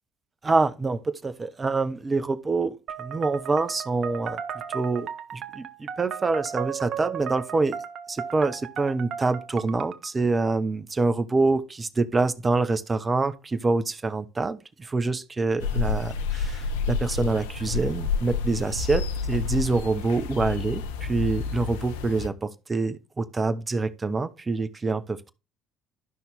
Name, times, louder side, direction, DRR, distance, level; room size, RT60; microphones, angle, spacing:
voice 1, 0.4-7.8 8.1-25.3, right 3 dB, 30° right, 1.0 m, -26 dB
sound 1, 2.9-10.1, right 8 dB, 55° right, 0.9 m, -35 dB
sound 2, 15.6-22.3, left 5 dB, 75° left, 0.7 m, -29 dB
12.5 x 5.9 x 3.6 m
figure-of-eight pair, 55°, 0 cm